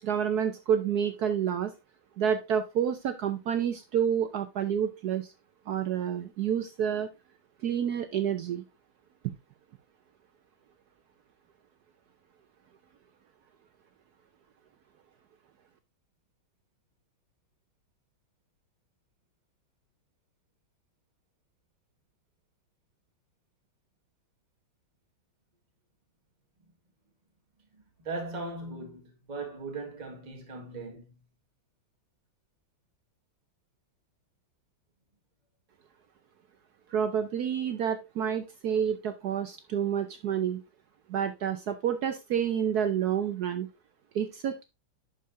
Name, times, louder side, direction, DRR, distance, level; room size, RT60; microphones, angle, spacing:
voice 1, 0.0-1.7 2.2-5.3 5.7-7.1 7.6-8.6 9.2-9.3 36.9-40.6 41.1-43.7 44.1-44.6, right 8 dB, 65° right, 1.1 m, -29 dB
voice 2, 27.7-31.2, right 3 dB, 25° right, 1.7 m, -39 dB
11.0 x 5.1 x 2.6 m
omnidirectional pair, 2.2 m